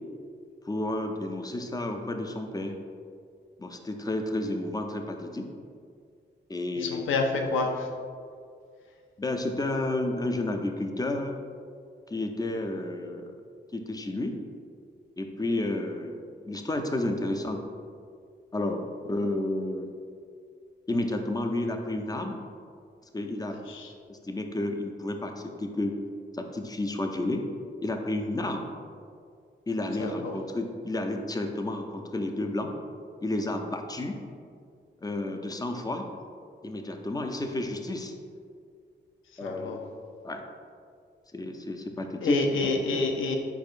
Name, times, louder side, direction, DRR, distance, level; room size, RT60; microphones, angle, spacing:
voice 1, 0.6-2.8 3.6-5.5 6.5-7.1 9.2-11.4 12.1-13.3 13.7-14.4 15.2-17.6 18.5-19.9 20.9-22.4 23.1-23.6 24.1-26.0 26.3-27.5 27.8-28.7 29.7-32.7 33.2-34.2 35.0-36.1 36.6-38.1 39.4-39.8 40.2-40.4 41.3-42.4, left 2 dB, 20° left, 4 dB, 0.5 m, -31 dB
voice 2, 6.7-7.9 23.7-23.9 30.0-30.3 39.4-39.8 42.2-43.4, left 3 dB, 90° left, 3 dB, 0.5 m, -28 dB
4.6 x 4.5 x 2.5 m, 2.2 s
cardioid pair, 60°, 20 cm